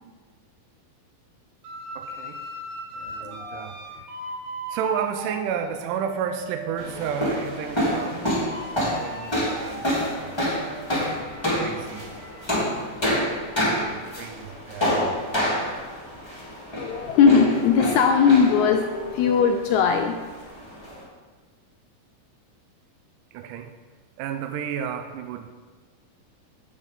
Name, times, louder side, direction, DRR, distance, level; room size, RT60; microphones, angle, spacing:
sound 1, 1.6-6.9 7.3-12.6, right 1 dB, 60° right, 2.0 m, -39 dB
voice 1, 1.9-2.4 2.9-4.1 4.7-8.4 8.7-10.4 11.6-12.1 13.7-15.6 23.3-23.7 24.2-25.5, right 7 dB, 80° right, 7 dB, 2.1 m, -32 dB
voice 2, 3.2-3.7 16.8-20.2, left 6 dB, 85° left, 5 dB, 1.7 m, -19 dB
sound 2, 6.8-21.0, equal, 10° left, 1.5 m, -28 dB
9.0 x 7.8 x 4.0 m, 1.4 s
omnidirectional pair, 3.9 m